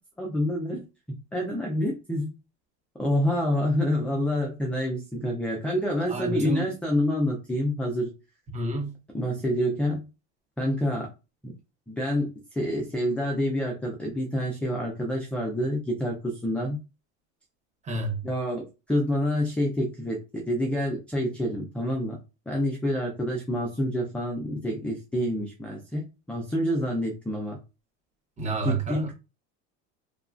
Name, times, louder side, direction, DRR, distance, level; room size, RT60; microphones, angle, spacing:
voice 1, 0.2-2.3 3.0-8.1 9.1-10.1 10.6-11.1 11.4-11.5 11.9-16.8 18.2-22.2 22.5-27.6 28.6-29.1, equal, 5° left, 0.4 m, -28 dB
voice 2, 6.1-6.7 8.5-9.0 17.8-18.2 28.4-29.1, right 2 dB, 20° right, 0.9 m, -29 dB
3.0 x 2.3 x 2.4 m
supercardioid pair, 135°, 36 cm